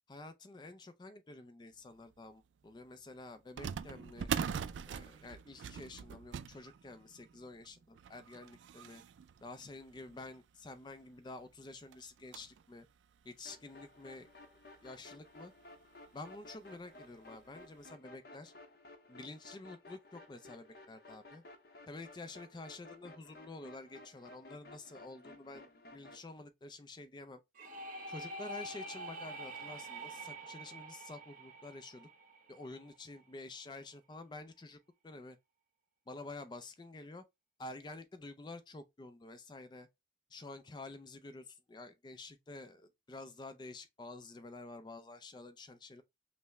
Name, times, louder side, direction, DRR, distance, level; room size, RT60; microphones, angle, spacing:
voice 1, 0.1-4.3 4.9-9.0 9.4-12.9 13.2-14.3 14.8-15.5 16.1-18.5 19.1-21.4 21.9-27.4 28.1-32.1 32.5-34.8 35.0-35.4 36.1-37.2 37.6-39.9 40.3-46.0, left 2 dB, 25° left, 0.3 m, -49 dB
sound 1, 2.1-2.2 3.6-10.5 11.1-11.2 11.4-11.5 11.9-12.6 13.2-13.3 14.1-14.2 14.6-14.7 16.1-16.3 16.7-16.8 17.4-17.6, right 7 dB, 85° right, 0.3 m, -42 dB
sound 2, 13.4-26.2, left 2 dB, 55° left, 0.7 m, -56 dB
sound 3, 27.6-33.2, right 1 dB, 45° right, 0.9 m, -46 dB
5.5 x 2.1 x 3.0 m
head